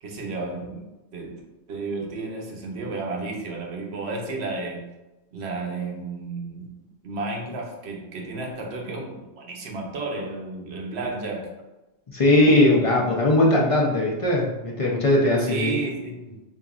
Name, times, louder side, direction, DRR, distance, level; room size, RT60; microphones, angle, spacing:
voice 1, 0.0-1.4 1.7-4.9 5.3-6.8 7.0-11.5 15.4-16.4, right 3 dB, 60° right, 1 dB, 1.0 m, -32 dB
voice 2, 12.1-15.7, left 1 dB, 40° left, -3 dB, 0.5 m, -19 dB
5.3 x 2.6 x 2.4 m, 1.0 s
omnidirectional pair, 1.3 m